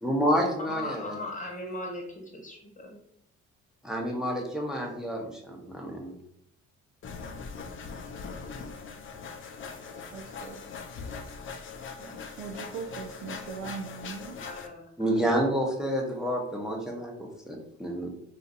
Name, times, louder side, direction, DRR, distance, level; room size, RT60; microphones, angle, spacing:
voice 1, 0.0-1.1 3.8-6.1 15.0-18.1, equal, ahead, -1 dB, 0.7 m, -29 dB
voice 2, 0.6-3.0 14.4-15.2, left 2 dB, 25° left, 1 dB, 0.9 m, -39 dB
sound 1, 7.0-14.7, left 5 dB, 40° left, 0.5 m, -41 dB
voice 3, 10.1-10.6 12.0-14.4, right 5 dB, 85° right, 2 dB, 0.5 m, -40 dB
2.5 x 2.4 x 4.0 m, 0.71 s
cardioid pair, 90°, 30 cm